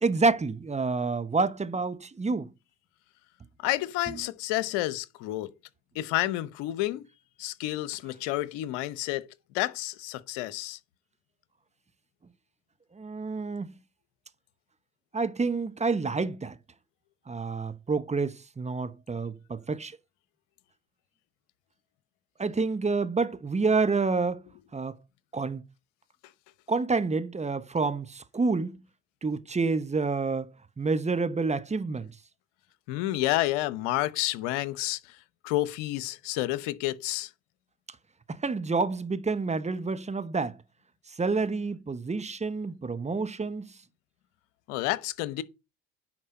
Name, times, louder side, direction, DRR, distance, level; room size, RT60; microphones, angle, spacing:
voice 1, 0.0-2.5 4.1-4.2 12.9-13.7 15.1-16.6 17.3-20.0 22.4-24.4 24.7-25.0 25.3-25.6 26.7-28.8 29.2-32.1 38.3-40.6 41.1-43.7, right 4 dB, 20° right, 1.0 m, -28 dB
voice 2, 3.6-5.5 5.9-7.0 7.4-9.3 9.5-10.8 32.9-35.0 35.4-37.3 44.7-45.4, left 16 dB, 75° left, 0.9 m, -30 dB
10.0 x 4.4 x 6.5 m
hypercardioid pair, 60°, 36 cm